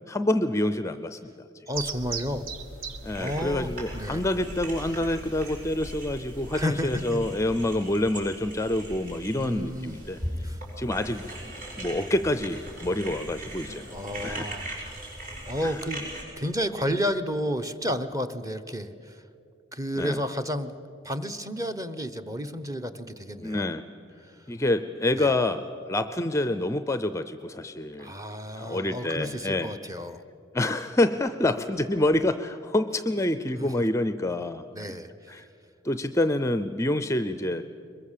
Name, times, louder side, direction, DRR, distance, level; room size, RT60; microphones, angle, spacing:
voice 1, 0.1-1.2 3.0-10.2 10.8-11.3 11.8-14.5 15.6-15.8 20.0-20.2 23.4-23.8 24.5-28.1 28.6-29.7 30.5-34.6 35.3-35.5 35.8-37.6, left 1 dB, 15° left, 11 dB, 0.5 m, -27 dB
voice 2, 1.7-2.5 3.2-4.3 6.5-7.3 9.4-10.0 10.4-10.6 13.9-14.8 15.4-16.1 16.4-19.2 19.7-20.7 21.0-23.7 24.2-24.4 25.1-25.3 28.0-30.2 33.6-33.7 34.7-35.4, equal, 15° right, 9 dB, 0.9 m, -32 dB
sound 1, 1.7-8.0, right 3 dB, 75° right, 1.3 m, -40 dB
sound 2, 3.0-16.2, right 1 dB, 40° right, 7.0 m, -39 dB
22.5 x 21.5 x 7.4 m, 2.6 s
head